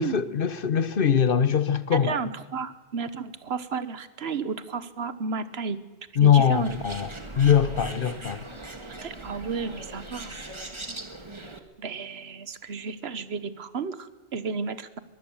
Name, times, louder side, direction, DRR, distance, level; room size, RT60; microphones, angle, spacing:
voice 1, 0.0-2.2 6.2-8.5, left 8 dB, 55° left, 1.1 m, -22 dB
voice 2, 1.9-5.8 6.2-6.7 9.0-10.4 11.8-15.0, right 5 dB, 70° right, 1.4 m, -32 dB
Bird, 6.5-11.6, right 2 dB, 25° right, 1.7 m, -39 dB
23.0 x 16.0 x 7.2 m
omnidirectional pair, 1.1 m